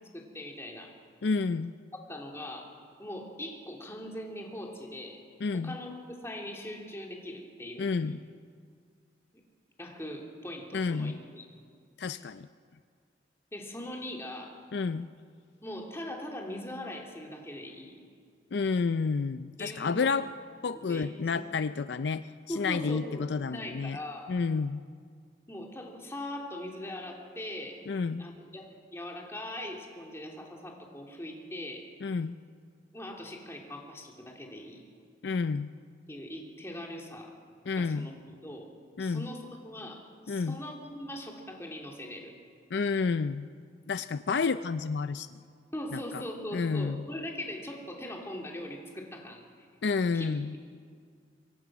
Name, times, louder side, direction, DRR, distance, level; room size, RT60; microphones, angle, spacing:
voice 1, 0.1-0.9 2.1-2.7 3.0-5.2 5.5-7.9 9.8-11.4 13.5-14.5 15.6-17.9 19.6-20.0 20.9-21.1 22.5-24.3 25.5-27.8 28.2-31.9 32.9-34.8 36.1-37.3 37.8-38.7 39.0-40.0 40.3-42.3 45.7-49.7 50.1-50.6, left 1 dB, 15° left, 0 dB, 2.9 m, -41 dB
voice 2, 1.2-1.7 5.4-5.8 7.8-8.2 10.7-11.2 12.0-12.5 14.7-15.1 18.5-20.3 20.6-24.0 24.3-24.8 27.9-28.2 32.0-32.4 35.2-35.7 37.7-38.1 39.0-39.3 40.3-40.6 42.7-43.5 43.9-45.3 45.9-46.2 46.5-47.0 49.8-50.6, left 4 dB, 65° left, 12 dB, 0.5 m, -30 dB
24.5 x 22.5 x 6.1 m, 2.1 s
head